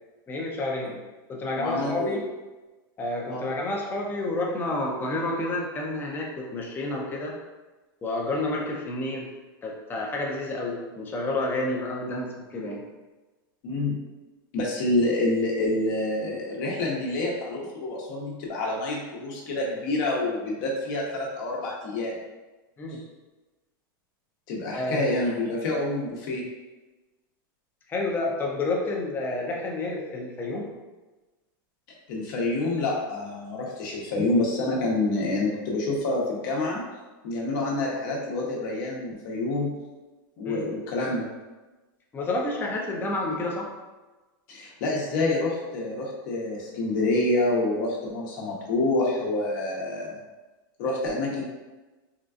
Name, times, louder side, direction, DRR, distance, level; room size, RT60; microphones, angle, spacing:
voice 1, 0.3-0.9 1.3-2.2 3.0-7.3 8.0-9.3 9.6-12.8 22.8-23.0 24.7-25.1 27.9-30.7 40.4-40.7 42.1-43.7, left 2 dB, 15° left, -1 dB, 0.5 m, -29 dB
voice 2, 1.6-2.2 3.3-3.5 13.6-14.0 14.5-22.1 24.5-26.4 32.1-36.8 37.2-39.7 40.4-41.3 44.5-50.2 50.8-51.4, left 2 dB, 60° left, -2 dB, 0.9 m, -27 dB
3.7 x 2.3 x 2.4 m, 1.2 s
supercardioid pair, 140°, 12 cm